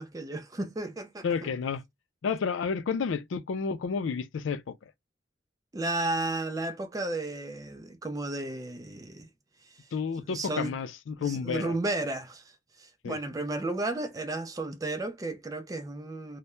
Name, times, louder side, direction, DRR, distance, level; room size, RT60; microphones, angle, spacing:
voice 1, 0.0-1.5 5.7-9.3 9.6-9.9 10.3-10.7 11.2-16.4, right 2 dB, 20° right, 0.3 m, -33 dB
voice 2, 1.2-1.8 2.2-4.9 9.9-11.8 13.0-13.2, left 5 dB, 80° left, 0.4 m, -31 dB
2.2 x 2.0 x 2.9 m
head